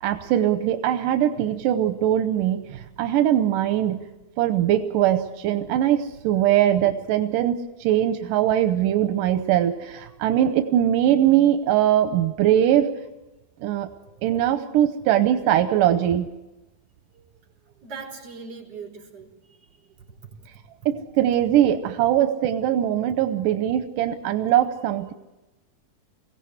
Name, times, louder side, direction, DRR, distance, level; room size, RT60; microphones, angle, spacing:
voice 1, 0.0-4.0 4.4-12.9 13.6-13.9 14.2-16.3 20.9-25.1, right 11 dB, 90° right, 8 dB, 2.5 m, -21 dB
voice 2, 13.9-14.3 17.1-17.3 17.8-20.3, right 5 dB, 50° right, 0 dB, 4.9 m, -41 dB
23.0 x 16.5 x 8.0 m, 1.1 s
omnidirectional pair, 3.7 m